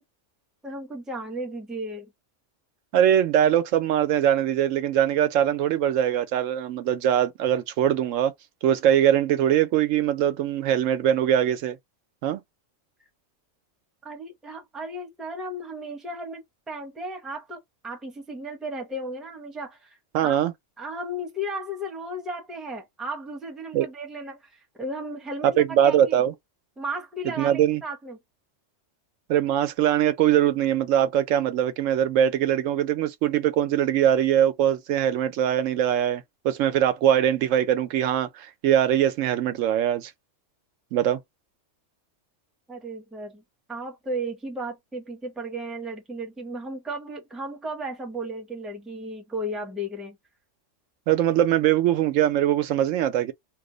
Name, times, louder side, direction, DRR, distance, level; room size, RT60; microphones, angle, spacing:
voice 1, 0.6-2.1 14.0-20.0 20.2-20.4 20.8-26.2 26.8-28.2 42.7-43.4 43.7-50.2, right 1 dB, ahead, 0.6 m, -35 dB
voice 2, 2.9-8.3 8.6-11.8 12.2-12.4 20.1-20.5 23.7-23.9 25.6-26.3 27.4-27.8 29.3-40.1 40.9-41.2 51.1-53.3, right 10 dB, 85° right, 0.9 m, -22 dB
2.8 x 2.0 x 3.7 m
omnidirectional pair, 1.3 m